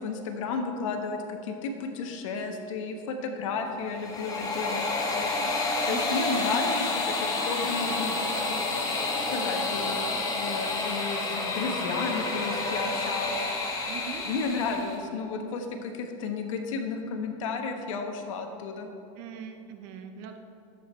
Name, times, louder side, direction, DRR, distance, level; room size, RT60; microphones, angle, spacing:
voice 1, 0.0-8.6 8.9-13.8 14.2-18.9, left 4 dB, 75° left, 5 dB, 1.3 m, -33 dB
sound 1, 3.8-14.9, left 3 dB, 20° left, 1.5 m, -29 dB
voice 2, 13.9-14.3 19.2-20.4, right 8 dB, 55° right, 6 dB, 1.0 m, -41 dB
11.0 x 8.0 x 4.5 m, 2.8 s
supercardioid pair, 140°, 17 cm